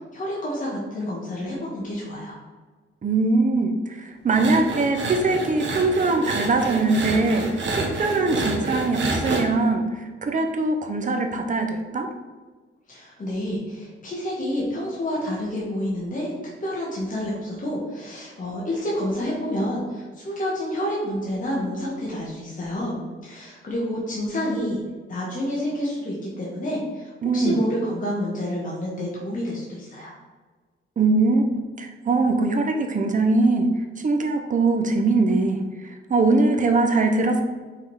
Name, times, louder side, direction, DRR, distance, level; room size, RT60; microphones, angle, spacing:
voice 1, 0.1-2.4 12.9-16.3 16.6-22.9 23.2-24.8 25.1-30.1, equal, 40° left, -5 dB, 1.4 m, -29 dB
voice 2, 3.0-12.1 27.2-27.6 31.0-31.4 31.8-33.7 34.0-35.6 35.8-37.4, right 3 dB, 40° right, 5 dB, 0.7 m, -22 dB
sound 1, 4.3-9.4, right 3 dB, 60° right, 1.1 m, -28 dB
5.7 x 3.6 x 4.7 m, 1.4 s
wide cardioid pair, 150°, 21 cm